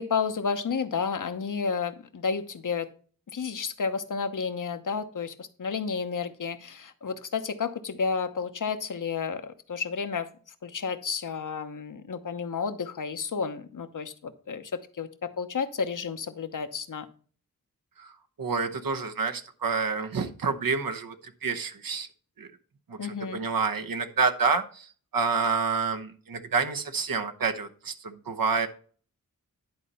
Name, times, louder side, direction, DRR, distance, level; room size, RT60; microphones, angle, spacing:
voice 1, 0.0-2.9 3.3-10.3 10.6-17.1 23.0-23.4, left 5 dB, 60° left, 10 dB, 1.0 m, -31 dB
voice 2, 18.4-21.1 21.4-22.1 22.4-22.5 22.9-28.7, right 5 dB, 75° right, 5 dB, 1.0 m, -28 dB
10.5 x 4.1 x 5.5 m, 0.43 s
cardioid pair, 55°, 35 cm